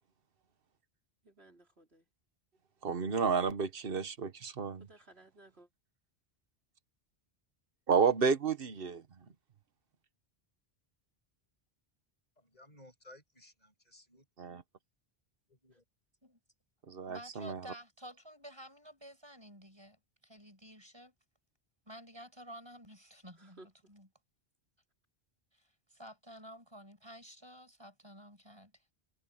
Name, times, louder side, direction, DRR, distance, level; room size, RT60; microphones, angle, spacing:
voice 1, 1.2-2.1 4.8-5.7 23.4-23.9, right 1 dB, 85° right, 4.4 m, -58 dB
voice 2, 2.8-4.9 7.9-9.0 14.4-14.6 16.9-17.6, right 5 dB, 65° right, 1.3 m, -31 dB
voice 3, 12.4-14.3 15.5-15.8, left 1 dB, 40° left, 6.6 m, -58 dB
voice 4, 17.1-21.1 21.9-24.1 25.5-28.8, equal, 25° right, 7.7 m, -52 dB
omnidirectional pair, 1.0 m